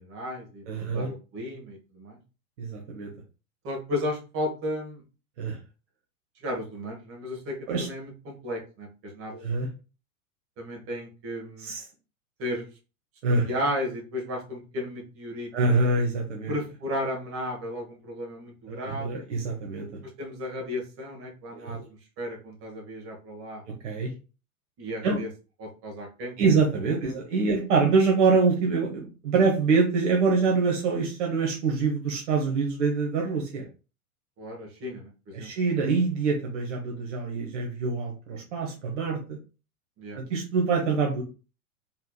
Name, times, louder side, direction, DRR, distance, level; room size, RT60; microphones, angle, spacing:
voice 1, 0.0-0.6 0.9-2.2 3.6-5.0 6.4-9.3 10.6-11.7 12.4-12.7 13.4-15.5 16.5-19.1 20.2-21.8 22.2-23.6 24.8-25.3 25.6-26.6 27.0-27.2 34.4-35.5 40.0-40.2, left 1 dB, 30° right, 1 dB, 1.7 m, -34 dB
voice 2, 0.7-1.1 2.6-3.1 5.4-5.6 7.7-7.9 9.3-9.7 11.6-11.9 13.2-13.5 15.5-16.5 18.7-19.9 21.5-21.9 23.8-24.1 25.0-25.2 26.4-33.6 35.3-39.4 40.1-41.2, right 4 dB, 55° right, -1 dB, 1.2 m, -25 dB
4.4 x 3.7 x 2.2 m, 0.33 s
figure-of-eight pair, 95°, 44 cm